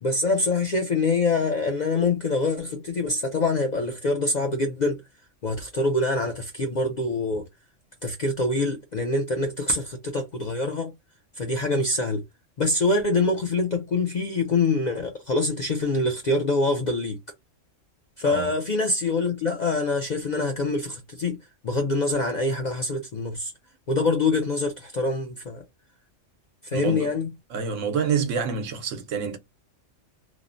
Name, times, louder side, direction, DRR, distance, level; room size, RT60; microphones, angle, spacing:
voice 1, 0.0-5.0 5.4-7.5 8.0-10.9 11.3-12.2 12.6-17.2 18.2-21.4 21.6-23.5 23.9-25.6 26.6-27.3, left 3 dB, 60° left, 0.5 m, -25 dB
voice 2, 26.7-27.1 27.5-29.4, right 6 dB, 80° right, 1.0 m, -27 dB
3.1 x 2.0 x 2.5 m
omnidirectional pair, 1.3 m